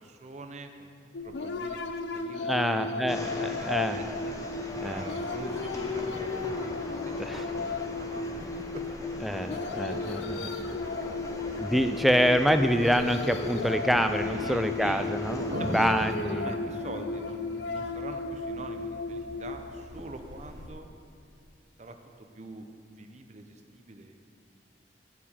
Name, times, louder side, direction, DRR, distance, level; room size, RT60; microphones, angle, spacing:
voice 1, 0.0-3.1 3.4-4.3 4.7-6.3 7.0-8.5 8.7-8.8 9.1-9.9 14.2-15.1 15.6-15.9 16.3-20.9 21.8-24.1, right 2 dB, 40° right, 6 dB, 0.7 m, -44 dB
sound 1, 1.1-20.7, left 3 dB, 75° left, 0.5 m, -35 dB
voice 2, 2.4-4.0 4.8-5.1 7.2-7.4 9.2-10.6 11.6-16.6, equal, ahead, 8 dB, 0.3 m, -26 dB
sound 2, 3.1-16.1, left 1 dB, 20° left, 0.8 m, -40 dB
sound 3, 10.3-20.7, right 1 dB, 85° right, 1.2 m, -43 dB
11.0 x 5.0 x 7.3 m, 2.5 s
head